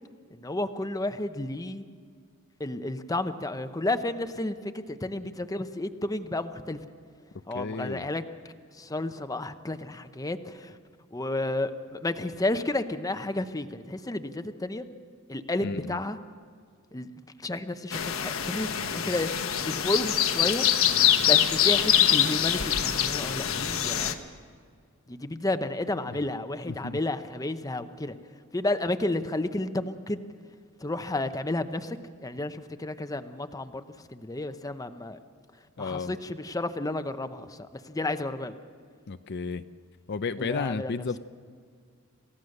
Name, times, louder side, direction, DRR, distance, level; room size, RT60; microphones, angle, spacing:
voice 1, 0.3-1.8 2.6-6.8 7.5-8.2 8.7-10.8 11.1-14.8 15.3-16.2 16.9-19.3 19.6-20.7 21.2-24.2 25.1-28.1 28.5-30.2 30.8-35.2 35.8-38.5 40.4-41.0, left 2 dB, 15° left, 9 dB, 0.8 m, -32 dB
voice 2, 7.5-8.1 15.6-16.0 26.1-26.2 26.7-27.0 35.8-36.1 39.1-39.6 40.1-41.2, left 4 dB, 55° left, 11 dB, 0.6 m, -32 dB
sound 1, 17.9-24.1, left 10 dB, 75° left, 1.2 m, -24 dB
28.0 x 15.5 x 6.6 m, 2.1 s
head